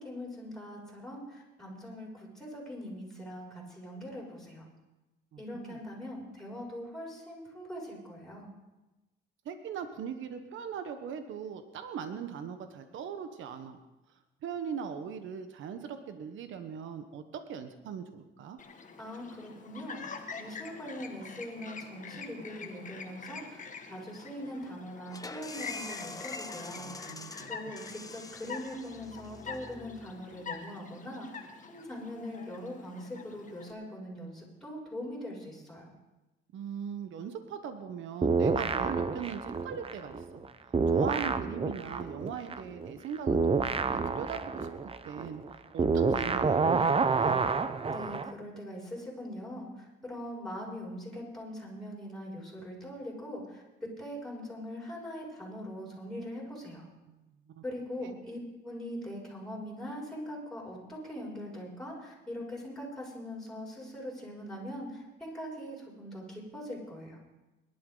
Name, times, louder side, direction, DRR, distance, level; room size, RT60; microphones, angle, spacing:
voice 1, 0.0-4.6 5.4-8.5 19.0-20.0 20.3-23.6 23.9-26.9 27.5-35.9 47.8-56.9 57.6-67.2, equal, ahead, -5 dB, 6.6 m, -42 dB
voice 2, 5.3-5.8 9.4-13.8 14.4-18.6 26.7-27.6 36.5-40.4 40.9-43.6 43.9-44.7 45.0-47.4 57.1-57.2 57.5-57.6 58.0-58.2, right 7 dB, 75° right, 8 dB, 1.1 m, -40 dB
Chirp tweet, 18.6-33.7, left 5 dB, 40° left, 1.7 m, -46 dB
sound 1, 25.1-30.5, left 3 dB, 20° left, 0.9 m, -45 dB
sound 2, 38.2-40.5 40.7-48.3, right 4 dB, 30° right, 0.8 m, -28 dB
21.5 x 11.5 x 3.9 m, 1.0 s
cardioid pair, 90°, 20 cm